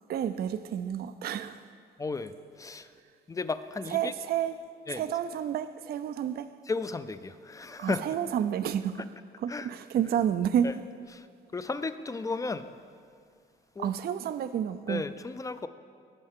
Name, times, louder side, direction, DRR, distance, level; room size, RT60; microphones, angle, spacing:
voice 1, 0.1-1.6 3.9-4.6 4.9-6.5 7.8-9.0 9.4-10.7 13.8-15.0, right 9 dB, 50° right, 12 dB, 0.4 m, -30 dB
voice 2, 2.0-2.9 3.3-4.1 4.9-5.0 6.7-8.0 9.5-9.7 10.6-10.7 11.1-11.3 11.5-12.7 13.8-13.9 14.9-15.7, left 3 dB, 15° left, 12 dB, 0.4 m, -34 dB
15.0 x 5.4 x 3.6 m, 2.2 s
cardioid pair, 90°, 20 cm